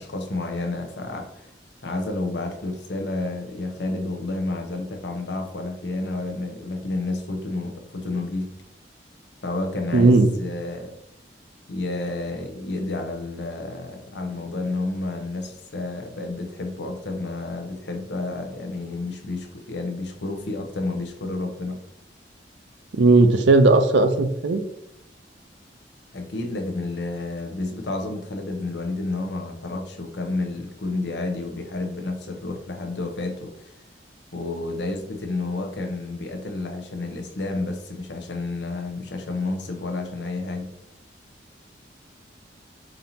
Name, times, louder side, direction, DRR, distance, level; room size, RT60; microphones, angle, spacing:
voice 1, 0.0-1.5 1.8-8.5 9.4-11.0 11.7-21.8 26.1-33.8 34.3-40.7, left 2 dB, 70° left, 4 dB, 0.7 m, -30 dB
voice 2, 9.9-10.3 23.0-24.6, right 3 dB, 75° right, 8 dB, 0.5 m, -16 dB
5.2 x 2.8 x 2.7 m, 0.79 s
head